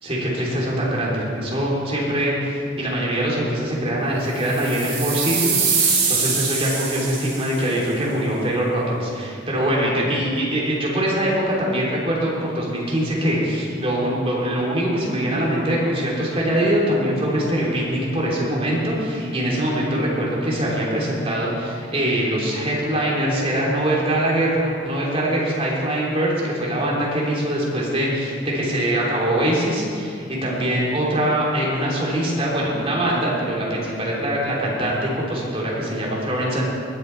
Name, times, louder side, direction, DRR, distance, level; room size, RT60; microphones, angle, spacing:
voice 1, 0.0-36.6, right 1 dB, 30° right, -4 dB, 3.1 m, -23 dB
sound 1, 4.4-7.6, right 5 dB, 85° right, 3.8 m, -23 dB
19.5 x 7.8 x 4.6 m, 2.5 s
head